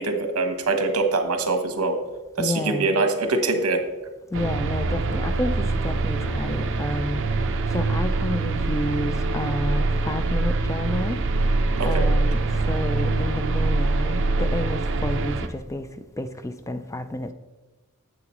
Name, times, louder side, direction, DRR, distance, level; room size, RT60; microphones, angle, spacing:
voice 1, 0.0-2.0 2.4-3.8 11.8-12.1, right 3 dB, 80° right, 1.1 m, -23 dB
voice 2, 2.4-2.9 4.3-11.2 11.8-12.4 12.7-15.9 16.2-17.3, left 1 dB, 15° left, 0.3 m, -30 dB
sound 1, 4.3-15.5, right 3 dB, 60° right, 0.6 m, -24 dB
9.6 x 7.8 x 3.0 m
head